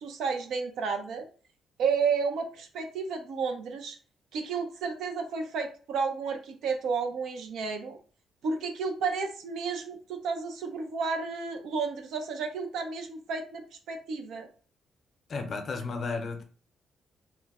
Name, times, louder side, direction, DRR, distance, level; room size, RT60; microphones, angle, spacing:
voice 1, 0.0-1.3 1.8-4.0 4.3-8.0 8.4-13.6 13.9-14.5, right 5 dB, 80° right, 0.6 m, -31 dB
voice 2, 15.3-16.4, left 4 dB, 45° left, 0.6 m, -33 dB
3.1 x 2.1 x 3.5 m
cardioid pair, 125°, 0 cm